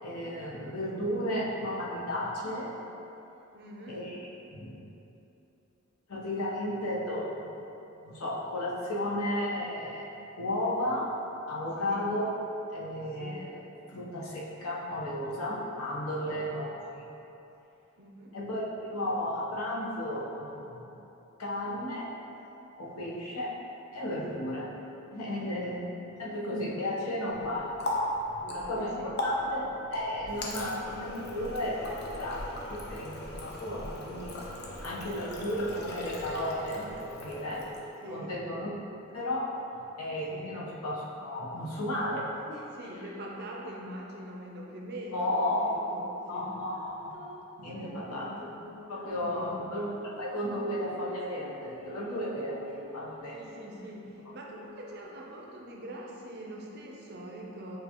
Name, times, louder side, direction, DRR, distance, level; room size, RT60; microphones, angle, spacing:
voice 1, 0.0-2.7 3.9-4.2 4.5-4.8 6.1-7.5 8.0-10.1 10.4-11.1 11.5-12.3 12.7-13.6 13.9-16.7 16.9-17.0 18.3-18.6 18.9-20.9 21.4-22.1 22.8-23.5 23.9-24.7 25.1-25.8 26.2-27.7 28.5-34.3 34.8-37.6 38.1-38.7 39.1-39.5 40.0-42.6 45.1-45.7 46.3-47.3 47.6-48.5 48.9-49.9 50.2-53.4, left 1 dB, 85° left, -5 dB, 0.9 m, -34 dB
voice 2, 3.5-4.1 11.8-12.0 13.2-13.4 16.2-16.4 18.0-18.4 23.1-23.2 24.3-24.5 25.4-25.8 28.3-29.1 38.0-38.3 40.3-40.5 42.7-46.5 47.7-48.0 49.1-49.6 53.3-57.8, right 1 dB, 50° right, -1 dB, 0.5 m, -43 dB
Water tap faucet, 27.3-38.1, left 1 dB, 50° left, 0.5 m, -37 dB
sound 1, 45.5-55.3, equal, 90° right, 0.8 m, -51 dB
6.6 x 2.4 x 2.9 m, 2.9 s
head